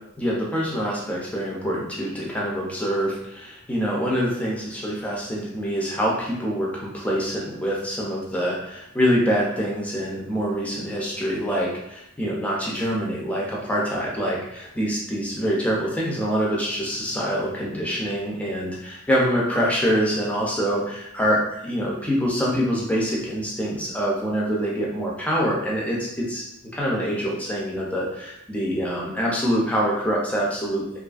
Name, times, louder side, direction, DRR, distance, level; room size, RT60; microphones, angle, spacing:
voice 1, 0.2-26.4 26.7-30.8, equal, 5° left, -4 dB, 0.5 m, -25 dB
2.6 x 2.5 x 2.3 m, 0.81 s
head